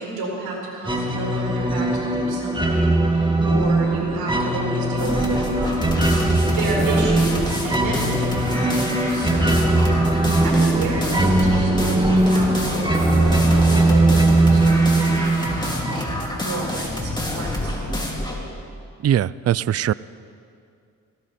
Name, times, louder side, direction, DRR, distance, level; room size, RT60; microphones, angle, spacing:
voice 1, 0.0-17.9, right 2 dB, 90° right, -1 dB, 4.7 m, -31 dB
sound 1, 0.8-16.3, right 2 dB, 15° right, 2.2 m, -20 dB
sound 2, 5.0-18.4, left 1 dB, 10° left, 3.5 m, -28 dB
voice 2, 19.0-19.9, right 10 dB, 45° right, 20 dB, 0.4 m, -20 dB
20.0 x 16.0 x 4.3 m, 2.4 s
supercardioid pair, 50°, 35 cm